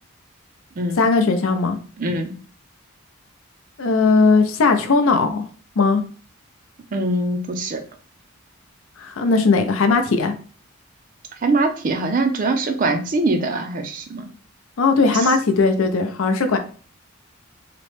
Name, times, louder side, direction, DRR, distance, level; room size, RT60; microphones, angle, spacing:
voice 1, 1.0-1.8 3.8-5.4 5.8-6.0 9.0-10.3 14.8-16.6, left 4 dB, 70° left, 7 dB, 0.5 m, -18 dB
voice 2, 2.0-2.3 6.9-7.8 11.4-14.3 15.1-15.3, right 2 dB, 40° right, 6 dB, 0.4 m, -22 dB
2.9 x 2.1 x 3.1 m, 0.41 s
head